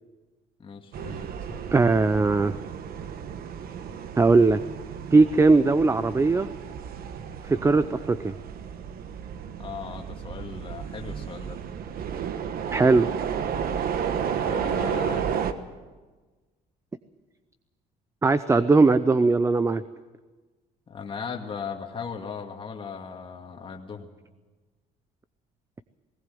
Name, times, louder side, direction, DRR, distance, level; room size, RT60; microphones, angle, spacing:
voice 1, 0.6-1.7 9.6-11.6 14.3-15.3 20.9-24.1, left 6 dB, 30° left, 2 dB, 2.1 m, -37 dB
sound 1, 0.9-15.5, right 8 dB, 60° right, 1.2 m, -32 dB
voice 2, 1.7-2.6 4.2-4.6 5.1-6.5 7.4-8.4 12.7-13.1 18.2-19.8, right 3 dB, 15° right, 13 dB, 0.6 m, -19 dB
19.0 x 17.5 x 7.7 m, 1.3 s
cardioid pair, 110°, 17 cm